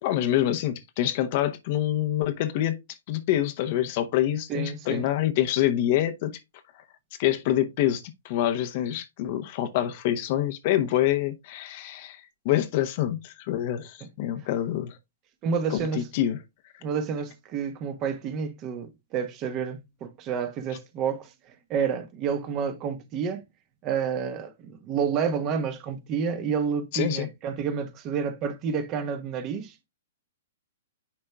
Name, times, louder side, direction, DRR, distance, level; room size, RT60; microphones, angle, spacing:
voice 1, 0.0-2.8 3.1-6.4 7.2-15.0 15.7-16.4 26.9-27.3, left 12 dB, 45° left, 0.8 m, -26 dB
voice 2, 4.5-5.1 15.4-16.1 16.8-23.4 23.8-29.7, right 6 dB, 30° right, 1.2 m, -29 dB
10.0 x 4.3 x 2.3 m
figure-of-eight pair, 115°, 0 cm